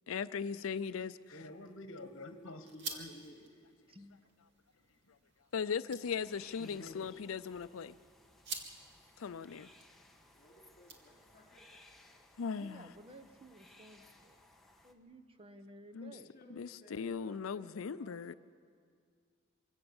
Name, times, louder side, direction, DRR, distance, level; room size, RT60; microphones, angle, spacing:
voice 1, 0.1-1.4 5.1-5.2 5.5-8.0 9.2-9.7 12.4-12.9 15.9-16.1 16.5-18.3, left 6 dB, 85° left, 14 dB, 0.5 m, -38 dB
sound 1, 1.2-11.5, right 4 dB, 60° right, 2.1 m, -51 dB
voice 2, 1.3-3.9 5.0-5.2 6.6-7.5, left 1 dB, 65° left, 8 dB, 1.3 m, -50 dB
voice 3, 3.9-4.3 12.5-14.4 14.8-16.3, right 1 dB, 25° right, 8 dB, 1.0 m, -55 dB
sound 2, 6.0-14.9, left 1 dB, ahead, 1.2 m, -62 dB
voice 4, 10.3-11.8 16.1-18.4, left 1 dB, 45° left, 0 dB, 3.2 m, -60 dB
25.5 x 16.5 x 7.1 m, 2.2 s
head